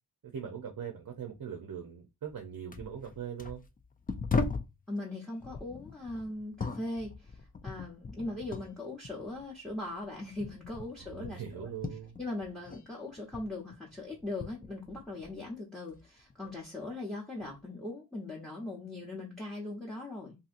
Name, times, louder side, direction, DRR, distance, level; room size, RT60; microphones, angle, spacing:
voice 1, 0.2-3.6 11.0-12.2, right 8 dB, 50° right, 0.6 m, -41 dB
sound 1, 2.3-2.4 2.7-4.8 5.4-8.8 9.0-12.9 13.1-15.5 15.9-16.6 17.4-17.6, left 4 dB, 25° left, 0.3 m, -39 dB
voice 2, 4.9-11.7 12.2-20.4, left 2 dB, ahead, 0.8 m, -40 dB
2.7 x 2.7 x 2.5 m
wide cardioid pair, 70°, 40 cm